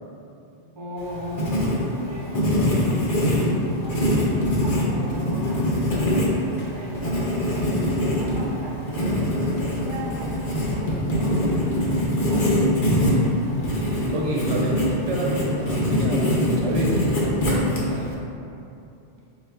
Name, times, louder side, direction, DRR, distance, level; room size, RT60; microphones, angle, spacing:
voice 1, 0.7-1.6 2.0-3.0 3.4-5.7 6.5-11.6 12.1-13.2, equal, 30° right, -6 dB, 0.7 m, -37 dB
Writing, 1.0-18.1, left 1 dB, 50° left, 0.8 m, -23 dB
voice 2, 14.1-18.1, right 1 dB, 80° right, -2 dB, 0.9 m, -29 dB
4.5 x 2.3 x 3.3 m, 2.7 s
omnidirectional pair, 1.2 m